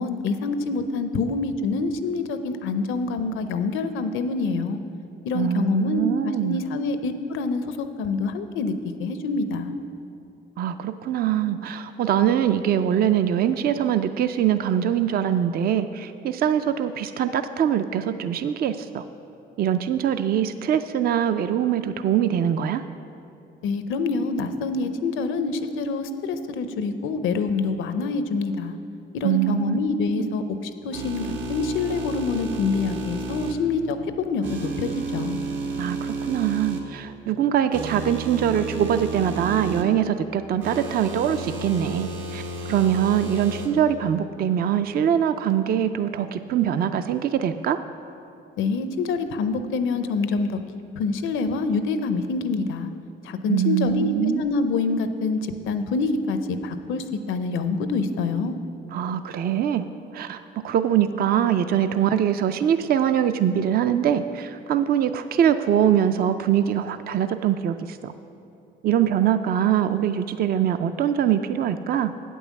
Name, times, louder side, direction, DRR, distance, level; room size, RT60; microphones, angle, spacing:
voice 1, 0.0-4.8 5.3-8.7 9.0-9.7 23.6-28.8 29.1-30.6 30.8-35.4 48.6-50.6 51.0-52.9 53.3-55.4 55.7-58.6, left 4 dB, 85° left, 10 dB, 0.6 m, -26 dB
voice 2, 5.3-6.6 10.6-19.0 19.6-22.8 29.2-29.8 30.2-30.3 35.8-42.4 42.7-47.8 53.5-54.4 58.9-59.9 60.1-60.4 60.6-68.1 68.8-72.1, right 9 dB, 50° right, 10 dB, 0.4 m, -23 dB
sound 1, 30.9-33.5 34.4-36.8 37.7-39.8 40.6-43.7, right 3 dB, 75° right, 1.2 m, -32 dB
8.6 x 5.5 x 7.2 m, 2.7 s
cardioid pair, 90°, 20 cm